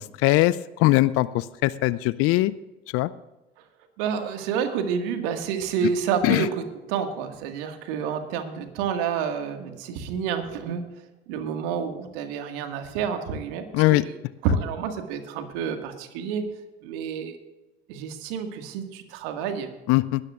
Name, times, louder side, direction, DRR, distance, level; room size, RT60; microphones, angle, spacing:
voice 1, 0.0-2.5 2.9-3.1 6.2-6.5 13.7-14.0 19.9-20.2, left 18 dB, 45° left, 18 dB, 0.5 m, -21 dB
voice 2, 4.0-6.6 6.9-10.8 11.3-14.2 14.4-16.4 16.8-17.4 17.9-19.7, right 7 dB, 60° right, 6 dB, 1.9 m, -29 dB
19.5 x 13.0 x 2.5 m, 1.1 s
hypercardioid pair, 75°, 32 cm